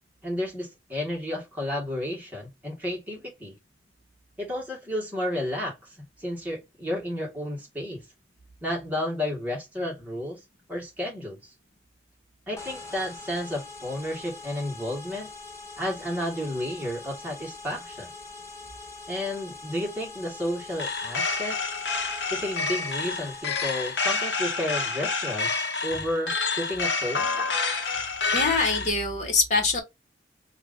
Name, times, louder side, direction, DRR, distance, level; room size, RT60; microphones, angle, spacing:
voice 1, 0.2-3.5 4.4-8.0 8.6-10.4 10.7-11.5 12.5-15.3 15.8-18.1 19.1-21.6 22.3-27.3, left 1 dB, 10° right, 1.6 m, -32 dB
sound 1, 12.6-24.0, left 3 dB, 15° left, 0.8 m, -43 dB
sound 2, 20.8-28.9, left 4 dB, 75° left, 1.0 m, -28 dB
voice 2, 28.3-29.8, left 3 dB, 40° left, 1.3 m, -24 dB
3.0 x 2.5 x 3.7 m
head